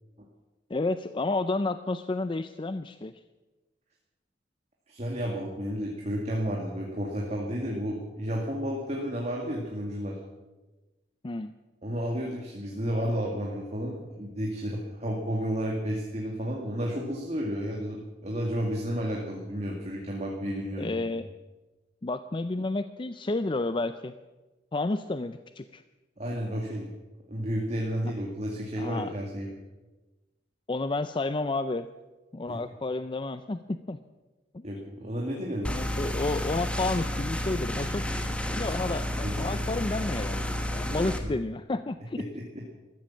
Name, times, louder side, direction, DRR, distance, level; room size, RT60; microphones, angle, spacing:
voice 1, 0.7-3.1 11.2-11.5 20.8-21.3 22.0-24.1 24.7-25.8 28.0-28.1 28.8-29.1 30.7-31.9 32.3-34.0 34.5-34.7 35.7-42.2, left 2 dB, 25° left, 11 dB, 0.5 m, -31 dB
voice 2, 4.9-10.2 11.8-21.0 26.2-26.9 27.3-29.6 32.5-32.6 34.6-35.7 38.6-38.7 39.2-39.7 40.9-41.1 42.3-42.6, equal, 40° right, -2 dB, 2.2 m, -32 dB
sound 1, 35.6-41.2, left 1 dB, 5° left, 1.3 m, -31 dB
14.0 x 13.5 x 7.3 m, 1.1 s
head